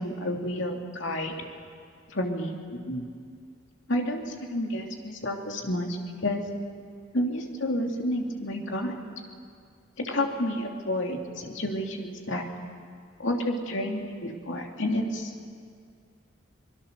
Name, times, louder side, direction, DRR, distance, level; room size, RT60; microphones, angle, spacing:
voice 1, 0.0-1.3 2.1-3.1 3.9-6.4 7.1-8.9 10.0-12.4 13.2-15.3, left 1 dB, 70° left, 2 dB, 2.6 m, -30 dB
25.0 x 20.5 x 6.7 m, 2.2 s
head